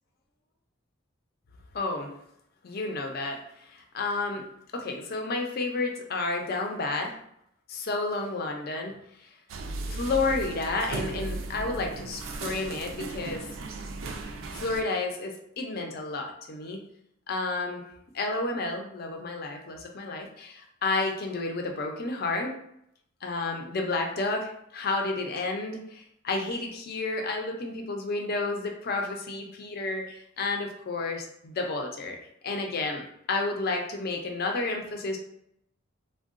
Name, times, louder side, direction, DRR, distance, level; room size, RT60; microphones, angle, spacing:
voice 1, 1.7-2.1 2.6-4.4 4.7-7.2 7.7-8.9 9.2-9.3 9.9-13.5 14.5-16.8 17.3-17.8 18.1-22.5 23.2-32.2 32.4-35.2, left 3 dB, 45° left, 2 dB, 0.5 m, -31 dB
sound 1, 9.5-14.8, right 3 dB, 70° right, 0.4 m, -36 dB
3.6 x 2.2 x 2.5 m, 0.73 s
head